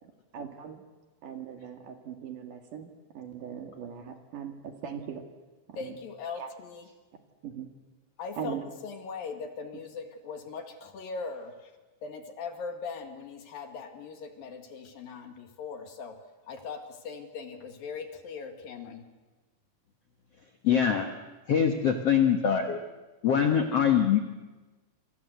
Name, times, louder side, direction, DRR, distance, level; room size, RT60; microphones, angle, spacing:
voice 1, 0.0-0.8 1.2-5.2 5.7-5.9 6.3-6.5 7.4-7.7 8.4-8.6, right 8 dB, 55° right, 5 dB, 2.8 m, -40 dB
voice 2, 5.8-6.9 8.2-8.6 8.8-11.7 12.0-16.2 16.5-19.1, left 5 dB, 60° left, 6 dB, 3.4 m, -40 dB
voice 3, 20.6-21.1 21.5-22.8 23.2-24.2, left 8 dB, 80° left, 5 dB, 1.4 m, -23 dB
27.5 x 27.0 x 8.0 m, 1.2 s
omnidirectional pair, 5.1 m